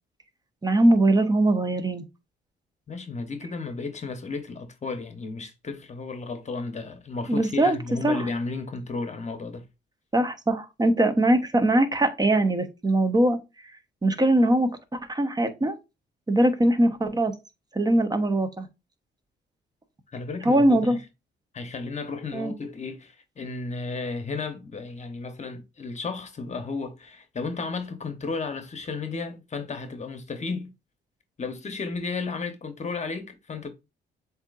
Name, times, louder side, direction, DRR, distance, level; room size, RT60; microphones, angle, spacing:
voice 1, 0.6-2.0 7.3-7.8 8.0-8.2 10.1-13.4 14.0-15.7 16.3-17.3 17.7-18.7 20.4-21.0 22.3-22.5, right 1 dB, 20° right, 0.9 m, -21 dB
voice 2, 2.9-9.6 20.1-21.0 21.5-30.7 31.4-33.7, left 4 dB, 35° left, 0.9 m, -33 dB
7.6 x 2.8 x 2.4 m
cardioid pair, 90°, 20 cm